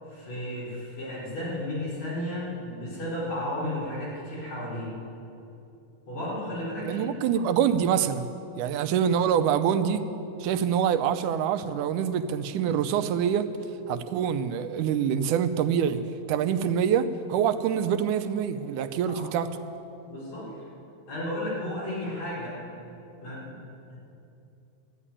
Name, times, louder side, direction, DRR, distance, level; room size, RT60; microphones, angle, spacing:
voice 1, 0.1-4.9 6.1-7.1 7.3-7.4 8.8-8.9 19.1-19.2 20.1-20.5 21.1-22.6 23.2-23.6 23.9-24.0, left 1 dB, 60° left, -7 dB, 5.9 m, -33 dB
voice 2, 6.8-8.3 8.6-10.0 10.4-13.5 13.9-16.0 16.3-19.5, right 8 dB, 85° right, 11 dB, 2.2 m, -25 dB
13.5 x 10.0 x 9.8 m, 2.8 s
omnidirectional pair, 3.5 m